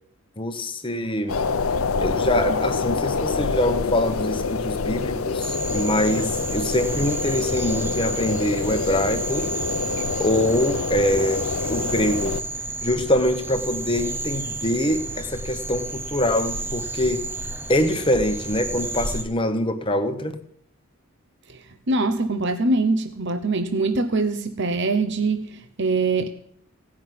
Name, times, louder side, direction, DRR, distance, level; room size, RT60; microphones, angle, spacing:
voice 1, 0.4-1.4 2.0-9.5 10.2-12.3 12.8-17.2 17.7-20.3, left 1 dB, 25° left, 7 dB, 1.1 m, -24 dB
sound 1, 1.3-12.4, left 4 dB, 70° left, 0.7 m, -26 dB
sound 2, 5.4-19.2, right 2 dB, 10° right, 0.7 m, -31 dB
voice 2, 21.5-26.3, right 3 dB, 50° right, 7 dB, 0.9 m, -23 dB
17.0 x 6.1 x 9.3 m, 0.69 s
head